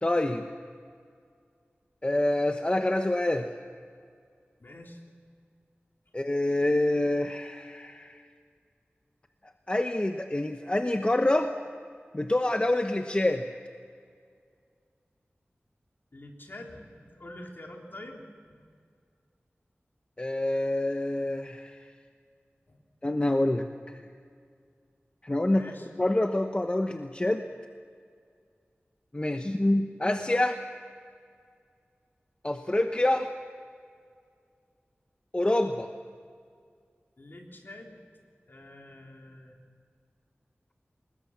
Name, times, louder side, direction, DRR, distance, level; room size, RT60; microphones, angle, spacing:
voice 1, 0.0-0.4 2.0-3.5 6.1-8.2 9.7-11.5 12.1-13.5 20.2-21.8 23.0-24.0 25.2-25.6 26.0-27.4 29.1-30.6 32.4-33.3 35.3-35.9, left 1 dB, 25° left, 6 dB, 1.0 m, -26 dB
voice 2, 4.6-5.0 16.1-18.7 22.7-22.8 25.5-25.9 37.2-38.0 38.5-39.6, left 1 dB, 55° left, 1 dB, 3.7 m, -46 dB
25.5 x 21.0 x 7.4 m, 2.2 s
wide cardioid pair, 70°, 4 cm